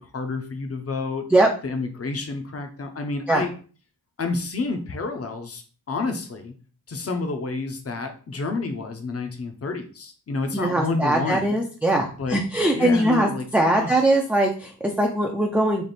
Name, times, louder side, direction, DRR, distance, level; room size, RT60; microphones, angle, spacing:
voice 1, 0.1-1.2 1.6-3.5 4.2-6.5 6.9-11.6 12.2-12.4 12.7-13.5 13.7-14.0, left 3 dB, 40° left, 6 dB, 0.7 m, -29 dB
voice 2, 10.5-15.9, right 1 dB, 5° right, 0 dB, 0.4 m, -21 dB
3.3 x 2.6 x 4.0 m, 0.39 s
wide cardioid pair, 125°, 38 cm